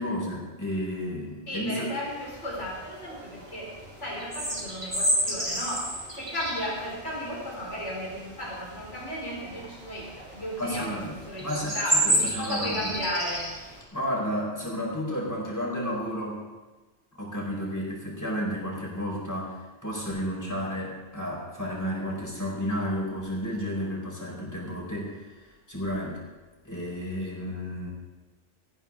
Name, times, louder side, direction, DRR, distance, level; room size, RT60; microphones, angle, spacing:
voice 1, 0.0-1.9 10.6-11.1 11.4-13.0 13.9-16.4 17.1-19.5 19.8-25.2 25.7-26.2 26.6-27.9, equal, 15° left, -4 dB, 5.0 m, -32 dB
voice 2, 1.5-3.7 4.0-13.5 27.1-27.3, equal, 75° left, -4 dB, 5.1 m, -35 dB
sound 1, 2.0-13.8, right 1 dB, 25° right, 3.8 m, -32 dB
19.0 x 14.5 x 3.8 m, 1.2 s
omnidirectional pair, 1.2 m